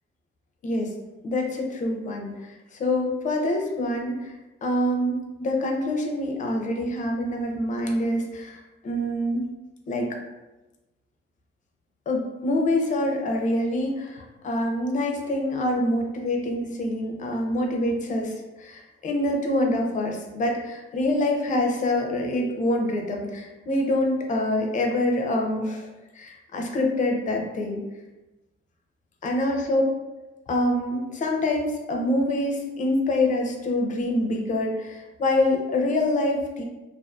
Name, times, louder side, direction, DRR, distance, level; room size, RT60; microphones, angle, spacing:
voice 1, 0.6-0.9 1.2-4.3 4.6-9.4 9.9-10.2 12.1-27.8 29.2-29.8 30.5-36.6, left 1 dB, 35° left, 1 dB, 0.4 m, -26 dB
2.4 x 2.4 x 2.3 m, 1.1 s
cardioid pair, 140°, 21 cm